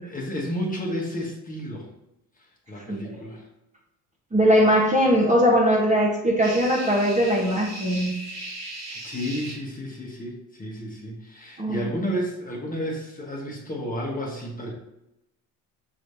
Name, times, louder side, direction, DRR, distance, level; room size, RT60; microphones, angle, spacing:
voice 1, 0.0-1.9 2.7-3.4 8.9-14.7, equal, 20° left, -2 dB, 1.3 m, -31 dB
voice 2, 4.3-8.1 11.6-11.8, equal, 15° right, -2 dB, 1.1 m, -20 dB
sound 1, 6.4-9.5, right 1 dB, 40° right, 1.7 m, -37 dB
6.1 x 3.1 x 2.7 m, 0.90 s
supercardioid pair, 85°, 43 cm